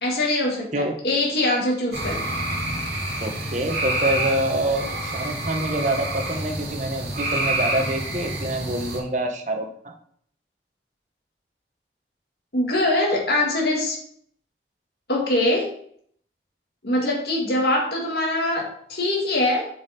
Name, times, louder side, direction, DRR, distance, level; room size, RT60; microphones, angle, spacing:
voice 1, 0.0-2.3 12.5-14.0 15.1-15.7 16.8-19.7, left 1 dB, 65° left, -2 dB, 2.2 m, -23 dB
sound 1, 1.9-9.0, right 1 dB, 65° right, 3.2 m, -28 dB
voice 2, 3.2-9.9, right 1 dB, 40° right, 3 dB, 1.2 m, -26 dB
7.8 x 5.4 x 4.3 m, 0.62 s
head